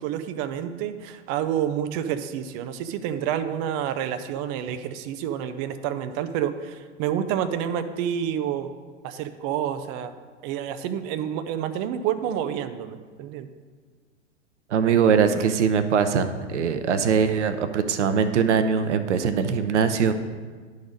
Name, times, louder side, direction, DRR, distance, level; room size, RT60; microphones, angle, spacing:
voice 1, 0.0-8.7 9.0-10.1 10.4-13.5 15.3-15.4, right 9 dB, 30° right, 10 dB, 0.4 m, -29 dB
voice 2, 14.7-20.1, right 6 dB, 70° right, 10 dB, 0.7 m, -22 dB
10.5 x 4.0 x 5.2 m, 1.5 s
figure-of-eight pair, 100°, 37 cm